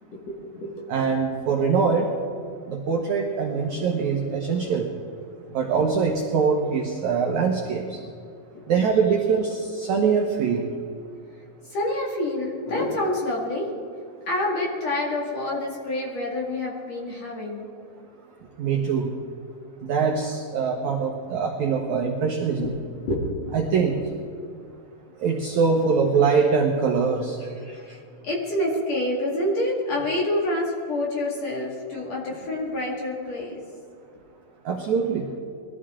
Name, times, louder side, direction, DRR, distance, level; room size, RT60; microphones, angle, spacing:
voice 1, 0.1-0.7 4.1-4.2 8.5-8.7 11.7-13.7 14.3-17.7 22.6-22.7 23.1-23.2 27.6-28.0 28.2-33.6, left 1 dB, 45° left, -3 dB, 2.7 m, -27 dB
voice 2, 0.9-2.1 2.7-4.9 5.5-8.0 8.7-10.7 18.6-19.1 19.9-22.8 23.5-24.0 25.2-27.4 34.6-35.3, right 5 dB, 85° right, 1 dB, 1.6 m, -23 dB
22.0 x 14.0 x 3.7 m, 2.3 s
omnidirectional pair, 5.0 m